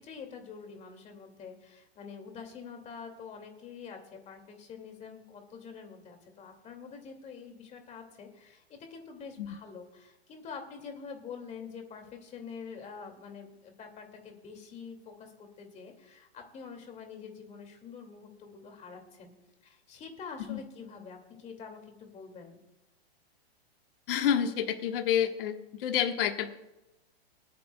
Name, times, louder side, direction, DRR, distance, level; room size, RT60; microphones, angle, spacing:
voice 1, 0.0-19.3 19.6-22.6, left 5 dB, 20° left, 4 dB, 2.3 m, -46 dB
voice 2, 24.1-26.5, left 9 dB, 60° left, 5 dB, 1.4 m, -28 dB
27.5 x 9.4 x 2.3 m, 0.96 s
hypercardioid pair, 145°, 32 cm